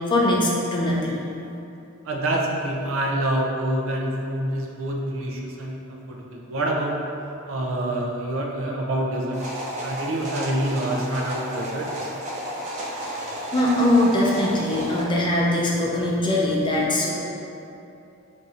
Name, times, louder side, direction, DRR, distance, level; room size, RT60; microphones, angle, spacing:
voice 1, 0.1-1.2 12.8-17.1, left 1 dB, 25° left, -4 dB, 0.5 m, -22 dB
voice 2, 2.0-7.1 7.5-9.4 9.8-12.1, right 1 dB, 65° right, -1 dB, 0.5 m, -27 dB
sound 1, 9.3-15.0, equal, 35° right, 0.7 m, -32 dB
3.7 x 2.6 x 4.2 m, 2.7 s
head